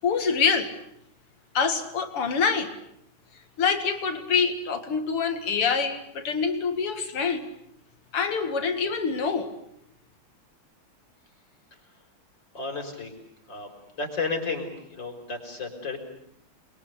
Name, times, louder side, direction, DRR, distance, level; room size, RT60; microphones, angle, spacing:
voice 1, 0.0-0.7 1.5-2.8 3.6-7.5 8.1-9.5, left 5 dB, 80° left, 6 dB, 3.0 m, -25 dB
voice 2, 12.5-13.1 13.5-13.7 14.0-16.0, left 4 dB, 55° left, 4 dB, 6.2 m, -32 dB
29.5 x 23.0 x 8.4 m, 0.73 s
omnidirectional pair, 2.4 m